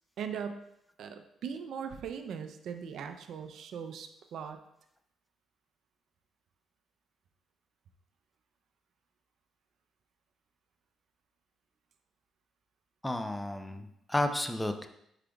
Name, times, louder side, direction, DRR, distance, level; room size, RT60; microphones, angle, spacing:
voice 1, 0.2-0.6 1.0-4.6, right 7 dB, 70° right, 8 dB, 0.5 m, -39 dB
voice 2, 13.0-14.9, left 1 dB, 10° left, 7 dB, 0.5 m, -32 dB
8.7 x 4.9 x 2.3 m, 0.78 s
cardioid pair, 90°, 0 cm